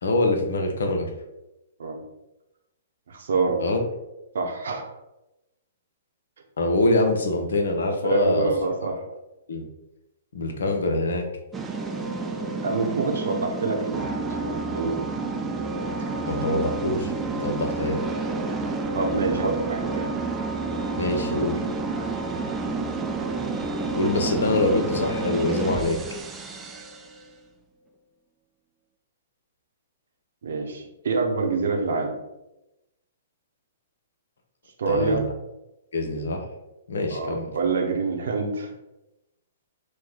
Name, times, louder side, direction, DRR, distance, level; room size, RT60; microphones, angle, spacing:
voice 1, 0.0-1.1 3.6-3.8 6.6-8.5 9.5-9.7 10.3-11.3 16.3-18.0 21.0-21.6 24.0-26.0 34.9-35.2 35.9-36.4 36.9-37.5, left 2 dB, 70° left, 4 dB, 0.6 m, -24 dB
voice 2, 3.1-3.6 4.3-4.9 8.0-9.0 12.6-15.0 18.9-20.1 30.4-32.1 34.8-35.3 37.1-38.7, right 4 dB, 65° right, 2 dB, 0.7 m, -26 dB
sound 1, 11.5-27.2, right 3 dB, 15° right, 0.4 m, -30 dB
2.9 x 2.2 x 3.8 m, 0.94 s
figure-of-eight pair, 115°, 0 cm